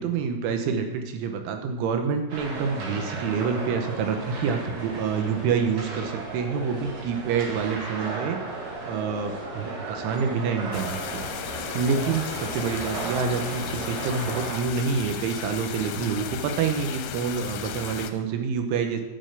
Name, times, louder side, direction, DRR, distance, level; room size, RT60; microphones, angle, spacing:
voice 1, 0.0-8.4 8.8-11.3 11.8-19.0, right 6 dB, 80° right, 5 dB, 3.5 m, -27 dB
sound 1, 2.3-14.6, right 2 dB, 50° right, 2.4 m, -35 dB
sound 2, 10.7-18.1, left 9 dB, 85° left, 2.9 m, -35 dB
9.7 x 6.7 x 6.8 m, 1.1 s
omnidirectional pair, 5.5 m